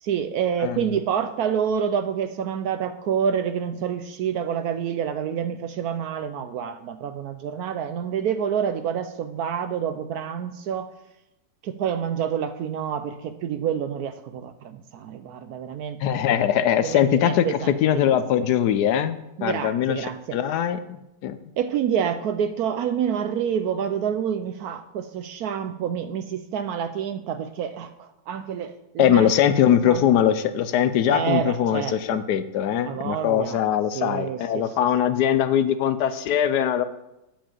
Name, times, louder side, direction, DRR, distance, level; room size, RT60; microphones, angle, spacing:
voice 1, 0.0-10.9 11.6-16.4 16.8-18.2 19.4-20.4 21.6-30.1 31.0-32.2 32.8-33.6 33.9-34.7, right 8 dB, 70° right, 10 dB, 0.9 m, -28 dB
voice 2, 0.6-1.0 16.0-21.0 21.2-21.4 29.0-36.8, left 10 dB, 70° left, 12 dB, 1.1 m, -21 dB
8.8 x 5.2 x 7.3 m, 0.93 s
omnidirectional pair, 1.9 m